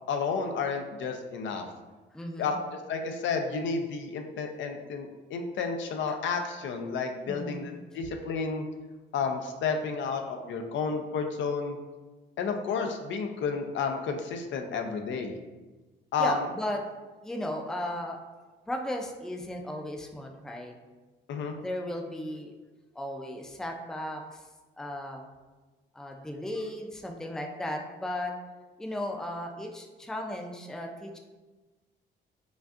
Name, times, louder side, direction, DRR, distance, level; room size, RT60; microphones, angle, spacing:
voice 1, 0.0-1.7 2.4-8.7 9.1-11.8 12.4-15.3 16.1-16.4 21.3-21.6, left 5 dB, 70° left, 5 dB, 0.5 m, -31 dB
voice 2, 2.1-2.6 6.1-6.2 7.3-7.6 16.2-16.8 17.2-18.2 18.7-20.7 21.6-22.5 22.9-24.4 24.8-25.2 25.9-28.3 28.8-31.2, left 1 dB, 5° left, 2 dB, 0.4 m, -35 dB
5.0 x 2.5 x 2.4 m, 1.2 s
cardioid pair, 90°, 20 cm